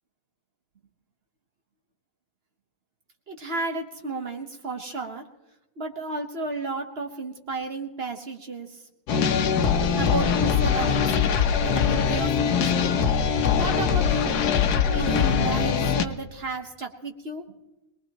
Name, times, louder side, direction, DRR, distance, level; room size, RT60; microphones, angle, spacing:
voice 1, 3.3-5.2 5.8-8.8 10.0-11.0 11.6-12.9 13.6-14.5 14.9-17.5, right 3 dB, 45° right, 5 dB, 1.3 m, -32 dB
sound 1, 9.1-16.1, left 7 dB, 85° left, 1.4 m, -22 dB
22.5 x 20.0 x 3.0 m, 0.98 s
omnidirectional pair, 1.6 m